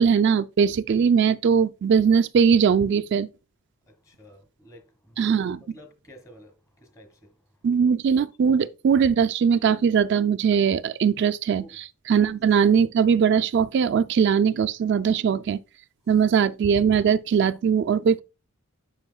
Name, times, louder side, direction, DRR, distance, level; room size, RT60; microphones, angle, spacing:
voice 1, 0.0-3.3 5.2-5.6 7.6-15.6 16.1-18.2, right 7 dB, 55° right, 0.3 m, -20 dB
voice 2, 3.9-5.5 5.7-7.2 11.5-11.7 12.1-12.3, equal, 15° left, 1.3 m, -50 dB
9.7 x 5.6 x 2.3 m
head